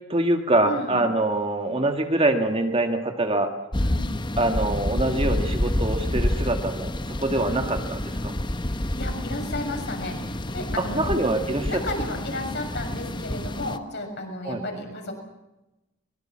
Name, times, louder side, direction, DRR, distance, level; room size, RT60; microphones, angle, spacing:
voice 1, 0.1-3.5 4.4-8.3 10.8-11.8 14.4-14.6, right 2 dB, 25° right, 5 dB, 1.7 m, -24 dB
voice 2, 0.6-1.0 3.8-4.1 7.5-7.7 8.6-11.2 11.7-15.1, left 1 dB, 50° left, 3 dB, 6.9 m, -33 dB
sound 1, 3.7-13.8, left 1 dB, 20° left, 0.9 m, -28 dB
23.0 x 22.0 x 7.5 m, 0.97 s
head